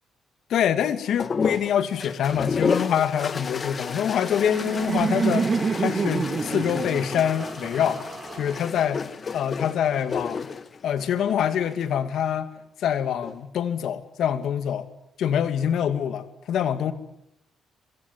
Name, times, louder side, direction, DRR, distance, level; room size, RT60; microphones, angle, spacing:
voice 1, 0.5-8.0 8.4-9.0 9.3-10.5 10.8-12.5 12.8-14.9 15.2-16.9, left 9 dB, 70° left, 11 dB, 2.2 m, -25 dB
sound 1, 1.2-11.9 13.0-13.6, left 5 dB, 40° left, 1.4 m, -32 dB
Laughter, 4.0-9.0, right 5 dB, 40° right, 3.2 m, -28 dB
24.0 x 23.0 x 9.4 m, 0.81 s
cardioid pair, 90°, 0 cm